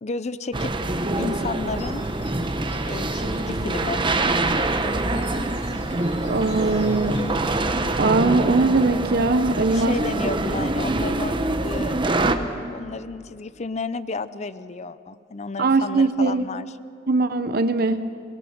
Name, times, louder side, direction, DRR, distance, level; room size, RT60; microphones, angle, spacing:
voice 1, 0.0-0.7 1.2-2.1 2.9-4.0 9.7-12.0 12.7-16.7, left 3 dB, 40° left, 14 dB, 0.6 m, -32 dB
sound 1, 0.5-12.4, right 2 dB, 25° right, 1.1 m, -25 dB
sound 2, 1.6-7.4, left 1 dB, 65° left, 5.5 m, -44 dB
voice 2, 6.2-7.2 8.0-9.9 15.6-16.4 17.1-18.0, right 3 dB, 55° right, 10 dB, 0.8 m, -20 dB
26.5 x 21.0 x 6.5 m, 2.4 s
head